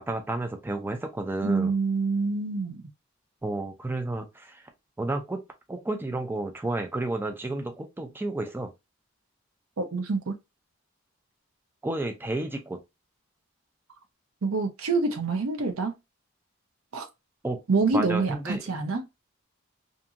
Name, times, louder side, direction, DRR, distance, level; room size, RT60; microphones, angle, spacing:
voice 1, 0.0-1.7 3.4-4.6 5.0-5.4 5.7-8.7 11.8-12.8 17.4-17.6 17.9-18.6, right 2 dB, 10° right, 0.4 m, -31 dB
voice 2, 1.4-2.8 9.8-10.4 14.4-15.9 16.9-17.1 17.7-19.1, right 3 dB, 85° right, 0.6 m, -26 dB
2.6 x 2.5 x 2.7 m
head